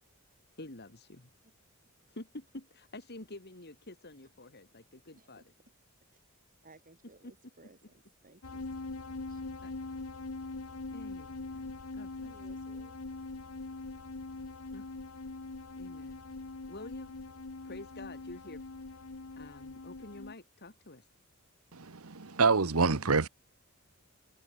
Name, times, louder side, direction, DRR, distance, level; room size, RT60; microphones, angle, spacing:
voice 1, 0.5-1.3 2.1-5.4 9.6-9.7 10.9-12.3 14.7-14.9 15.8-16.2 16.7-17.2 17.6-21.1, left 2 dB, 50° left, 3.3 m, -49 dB
voice 2, 5.2-5.5 6.1-6.2 6.6-8.7 9.3-9.4 12.2-12.9, right 2 dB, 40° right, 4.1 m, -59 dB
sound 1, 8.4-20.3, left 3 dB, 80° left, 1.2 m, -42 dB
voice 3, 21.7-23.3, right 4 dB, 85° right, 1.2 m, -27 dB
open air
head